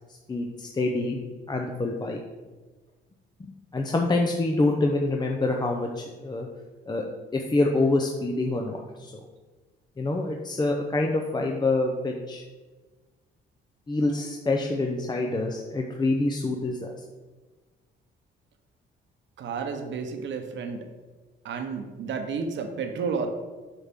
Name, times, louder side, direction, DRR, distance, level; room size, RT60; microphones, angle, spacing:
voice 1, 0.3-1.2 1.5-2.2 3.7-6.5 6.9-7.0 7.3-9.1 10.0-12.4 13.9-16.9, left 2 dB, 20° left, 1 dB, 0.6 m, -26 dB
voice 2, 19.4-20.9 21.4-23.3, right 5 dB, 70° right, 5 dB, 1.0 m, -31 dB
6.9 x 5.8 x 3.7 m, 1.3 s
cardioid pair, 90°, 20 cm